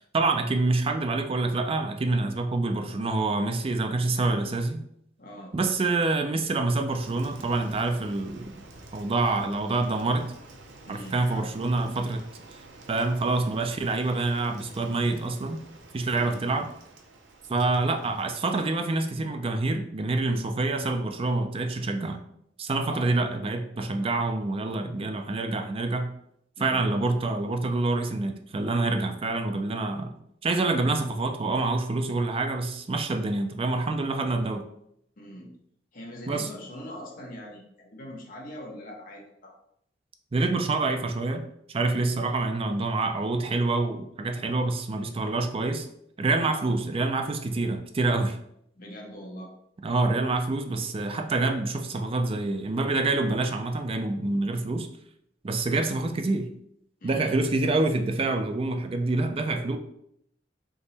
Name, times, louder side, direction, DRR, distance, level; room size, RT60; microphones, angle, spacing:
voice 1, 0.1-4.8 5.5-8.5 8.9-10.3 10.9-12.3 12.9-15.6 15.9-16.7 17.5-22.2 22.6-26.1 26.6-30.1 30.4-34.7 36.3-36.5 40.3-45.9 46.2-48.4 49.8-54.9 55.4-56.5 57.0-59.8, right 2 dB, 30° right, 6 dB, 0.4 m, -26 dB
voice 2, 5.2-5.5 10.8-11.5 16.1-16.5 22.9-23.2 26.6-26.9 35.2-35.5 35.9-39.5 46.4-46.7 48.8-49.5 57.0-57.4, equal, 50° left, -1 dB, 1.1 m, -42 dB
Rain, 6.9-19.3, right 2 dB, 75° right, 0.7 m, -50 dB
3.6 x 2.9 x 4.1 m, 0.72 s
head